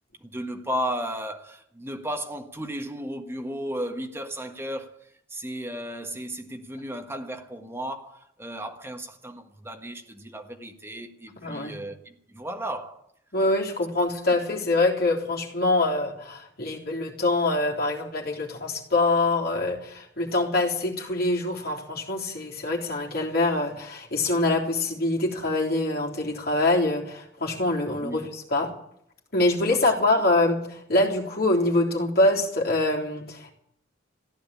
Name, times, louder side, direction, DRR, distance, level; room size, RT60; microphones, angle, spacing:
voice 1, 0.2-5.0 5.3-13.0 28.0-28.3, equal, 10° right, 1.5 m, -34 dB
voice 2, 11.4-11.7 13.3-28.7 29.3-33.5, left 2 dB, 50° left, 3.6 m, -24 dB
15.5 x 10.5 x 8.4 m
head